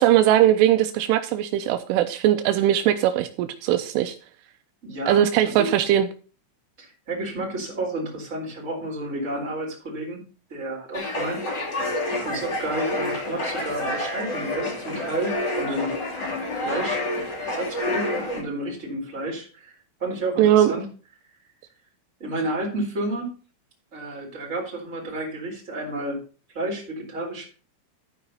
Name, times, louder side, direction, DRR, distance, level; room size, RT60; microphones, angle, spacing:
voice 1, 0.0-4.1 5.1-6.1 20.4-20.7, right 12 dB, 85° right, 9 dB, 3.1 m, -20 dB
voice 2, 4.8-5.7 6.8-11.7 12.2-15.9 16.6-17.0 17.4-20.9 22.2-23.3 23.9-26.2 26.5-27.5, right 1 dB, 15° right, -3 dB, 3.7 m, -31 dB
sound 1, 10.9-18.4, left 1 dB, 30° left, 2.3 m, -28 dB
13.0 x 4.9 x 5.5 m, 0.37 s
omnidirectional pair, 5.6 m